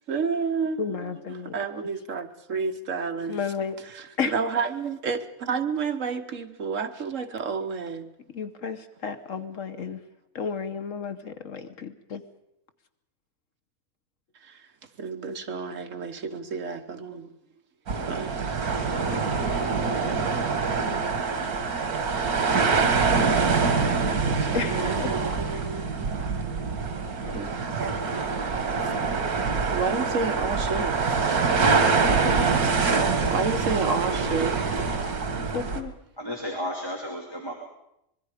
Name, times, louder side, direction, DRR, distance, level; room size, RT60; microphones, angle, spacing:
voice 1, 0.1-3.4 3.8-8.1 14.4-14.6 15.0-17.3 18.1-19.4 21.7-21.8 24.3-26.1 27.3-27.5 28.1-28.3 28.8-28.9 29.7-31.0 33.3-34.6, right 5 dB, 60° right, 1.5 m, -31 dB
voice 2, 0.8-1.5 3.3-3.8 4.2-4.3 8.3-10.0 10.3-12.2 24.5-25.1 25.5-25.6 35.5-35.9, left 6 dB, 65° left, 1.3 m, -32 dB
sound 1, 17.9-35.8, right 4 dB, 85° right, 2.1 m, -25 dB
voice 3, 27.5-28.1 32.4-32.6 36.2-37.5, equal, 15° left, 2.7 m, -34 dB
25.5 x 21.5 x 5.0 m
omnidirectional pair, 1.5 m